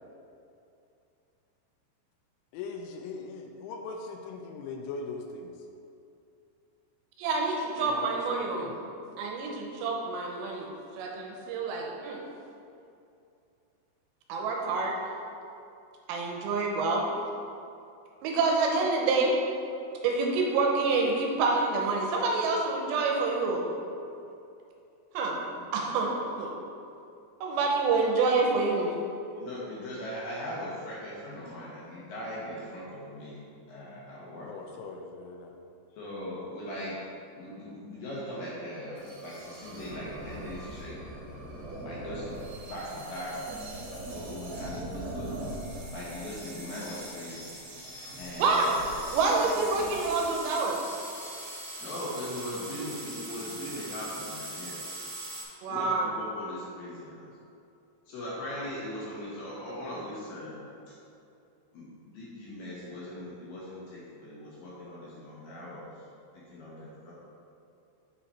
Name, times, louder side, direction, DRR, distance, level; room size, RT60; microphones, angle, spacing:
voice 1, 2.5-5.5 7.8-8.7 25.6-25.7 34.4-35.5, left 4 dB, 85° left, 3 dB, 2.8 m, -40 dB
voice 2, 7.2-8.7 9.2-12.2 14.3-15.0 16.1-17.0 18.2-19.3 20.0-23.7 25.1-25.4 25.7-26.5 27.4-28.9 48.4-48.8 49.1-50.8 55.6-56.1, right 3 dB, 80° right, 0 dB, 2.8 m, -27 dB
voice 3, 29.4-34.5 36.0-37.0 37.4-41.0 41.8-42.3 42.7-43.4 44.1-45.4 45.9-47.5 48.2-48.6 49.8-49.9 51.8-54.8 55.7-57.3 58.1-60.9 61.7-65.9 66.5-67.1, left 1 dB, 70° left, -7 dB, 2.3 m, -40 dB
sound 1, 39.0-55.4, right 1 dB, 60° right, 2.8 m, -41 dB
6.9 x 5.5 x 4.2 m, 2.6 s
omnidirectional pair, 5.2 m